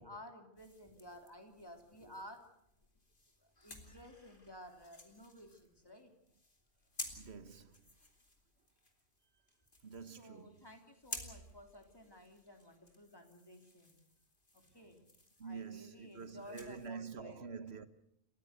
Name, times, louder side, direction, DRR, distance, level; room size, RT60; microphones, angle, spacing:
voice 1, 0.0-2.5 3.4-6.1 10.0-14.1 14.5-15.0 15.4-17.4, left 1 dB, 20° left, 3.2 m, -54 dB
sound 1, 0.6-16.9, left 2 dB, 50° left, 3.3 m, -54 dB
voice 2, 7.1-7.9 9.8-10.7 15.4-17.9, right 5 dB, 75° right, 1.6 m, -47 dB
30.0 x 14.5 x 8.2 m
omnidirectional pair, 1.1 m